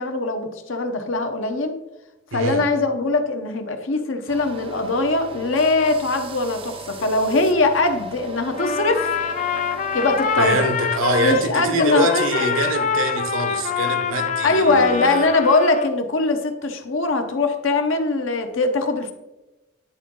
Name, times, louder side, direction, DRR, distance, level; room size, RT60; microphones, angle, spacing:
voice 1, 0.0-1.7 2.3-9.1 9.9-10.6 11.2-12.5 14.4-19.1, left 3 dB, 70° left, 0.8 m, -21 dB
voice 2, 2.3-2.6 10.4-15.3, right 1 dB, 80° right, 0.9 m, -24 dB
sound 1, 4.3-11.5, right 4 dB, 25° right, 0.4 m, -38 dB
Trumpet, 8.5-11.5 11.8-15.9, left 6 dB, 40° left, 0.4 m, -25 dB
10.0 x 3.9 x 3.7 m
head